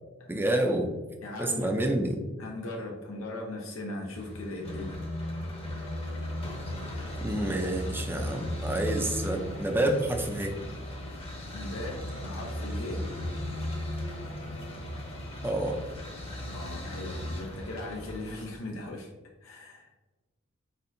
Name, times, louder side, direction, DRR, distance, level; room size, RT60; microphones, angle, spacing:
voice 1, 0.3-0.9 1.4-2.2 7.2-10.6 15.4-15.8, right 1 dB, 10° right, 3 dB, 0.5 m, -28 dB
voice 2, 1.2-1.8 2.4-5.0 11.5-13.0 16.5-19.1 19.4-19.9, left 1 dB, 90° left, 0 dB, 0.7 m, -38 dB
sound 1, 4.1-18.5, left 1 dB, 30° left, 0.8 m, -36 dB
4.5 x 4.3 x 2.6 m, 1.2 s
head